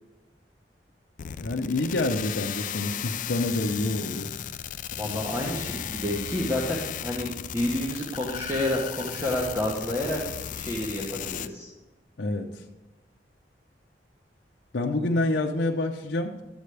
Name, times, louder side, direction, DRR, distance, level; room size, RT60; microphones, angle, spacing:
sound 1, 1.2-11.5, left 10 dB, 45° left, 0.3 m, -35 dB
voice 1, 1.4-4.3 4.9-5.2 12.2-12.6 14.7-16.3, left 2 dB, 85° left, 1 dB, 0.7 m, -27 dB
voice 2, 5.0-10.2 10.5-11.7, left 1 dB, 15° right, -4 dB, 1.3 m, -29 dB
12.0 x 8.1 x 3.3 m, 1.1 s
head